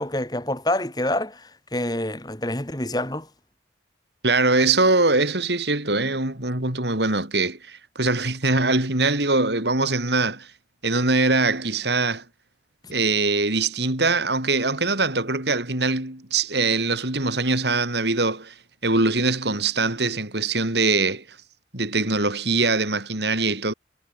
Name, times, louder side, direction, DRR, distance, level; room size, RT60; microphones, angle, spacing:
voice 1, 0.0-3.3 12.8-12.9, left 1 dB, 20° left, 3.2 m, -27 dB
voice 2, 4.2-10.5 10.8-12.2 12.9-18.5 18.8-21.2 21.7-23.7, right 3 dB, 70° right, 4.5 m, -22 dB
head